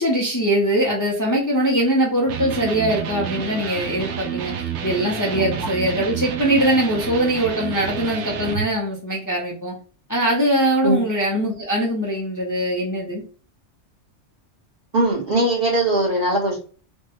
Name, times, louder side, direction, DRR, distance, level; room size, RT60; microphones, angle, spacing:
voice 1, 0.0-9.7 10.1-13.2, right 1 dB, 25° left, -2 dB, 0.5 m, -22 dB
Electric guitar, 2.3-8.7, right 8 dB, 85° right, 0.9 m, -29 dB
voice 2, 14.9-16.6, right 1 dB, 55° right, -3 dB, 1.5 m, -20 dB
3.4 x 2.2 x 2.8 m, 0.39 s
omnidirectional pair, 1.2 m